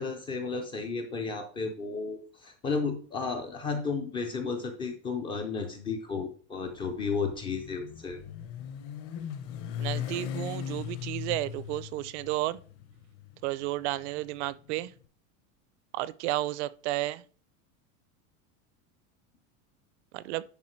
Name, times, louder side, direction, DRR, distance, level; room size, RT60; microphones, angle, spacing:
voice 1, 0.0-8.2, left 4 dB, 15° left, 0.4 m, -33 dB
Motorcycle, 6.6-14.8, left 9 dB, 35° left, 0.8 m, -39 dB
voice 2, 9.8-12.6 13.4-14.9 15.9-17.2 20.1-20.4, right 16 dB, 55° right, 0.5 m, -32 dB
10.5 x 4.0 x 4.4 m
supercardioid pair, 175°, 40 cm